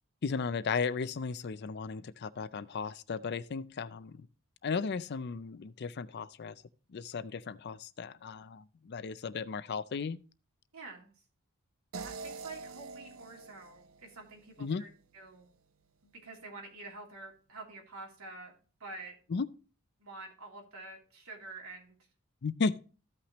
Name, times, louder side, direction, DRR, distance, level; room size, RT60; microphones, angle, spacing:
voice 1, 0.2-4.3 4.6-6.5 6.9-10.2 14.6-14.8 19.3-19.5 22.4-22.8, left 5 dB, 50° left, 0.4 m, -35 dB
voice 2, 10.7-11.1 12.0-14.9 15.1-15.5 16.0-18.5 18.8-19.1 20.0-22.0, right 3 dB, 90° right, 2.9 m, -47 dB
sound 1, 11.9-15.0, right 4 dB, 70° right, 0.6 m, -46 dB
14.5 x 5.8 x 3.0 m
head